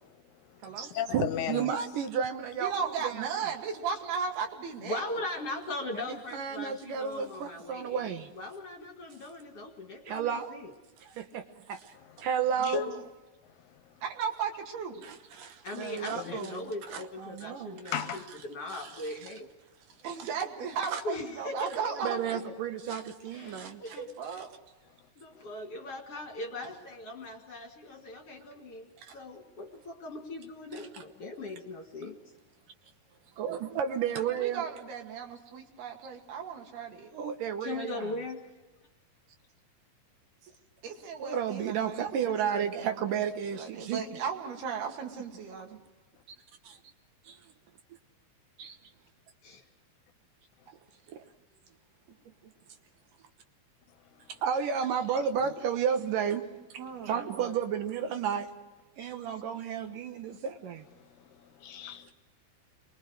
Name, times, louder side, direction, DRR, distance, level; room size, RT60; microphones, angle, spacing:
voice 1, 0.0-0.6 0.9-1.7 12.0-12.3 12.6-13.0 13.6-13.8 16.2-16.4 17.9-18.2 56.9-57.0 60.3-60.4 61.0-62.1, left 9 dB, 75° left, 2.4 m, -36 dB
voice 2, 0.8-3.3 5.9-8.3 10.1-10.6 11.0-12.8 15.0-18.0 18.7-19.1 20.9-21.0 22.0-24.0 29.0-29.2 33.4-34.6 37.1-38.1 41.2-44.2 46.6-46.8 47.3-47.4 48.6-48.8 51.1-51.2 54.3-56.5 57.0-58.5 59.0-60.9, right 7 dB, 70° right, 2.5 m, -32 dB
voice 3, 2.6-5.0 12.6-13.0 14.0-15.0 20.0-22.4 23.4-24.5 34.3-37.1 40.8-43.0 43.5-45.8 56.8-57.5, right 6 dB, 85° right, 4.3 m, -36 dB
voice 4, 4.9-10.7 15.6-19.5 21.0-21.8 23.3-24.1 25.2-32.2 37.6-38.4 49.4-49.6 54.1-54.2 59.0-59.4, left 2 dB, 45° left, 2.4 m, -40 dB
28.0 x 22.5 x 4.8 m
omnidirectional pair, 4.4 m